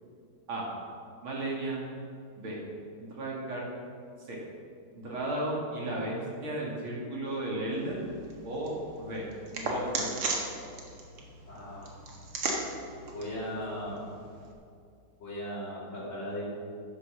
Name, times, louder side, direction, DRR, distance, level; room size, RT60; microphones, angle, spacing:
voice 1, 1.2-1.8 2.4-2.6 3.0-3.6 4.2-4.4 4.9-8.1 8.4-10.2, right 1 dB, 70° right, -4 dB, 3.2 m, -34 dB
sound 1, 7.7-14.5, right 2 dB, 90° right, 2.6 m, -37 dB
voice 2, 11.5-11.9 13.1-14.0 15.2-16.4, equal, 65° left, -10 dB, 3.7 m, -37 dB
11.0 x 9.6 x 6.4 m, 2.4 s
omnidirectional pair, 2.3 m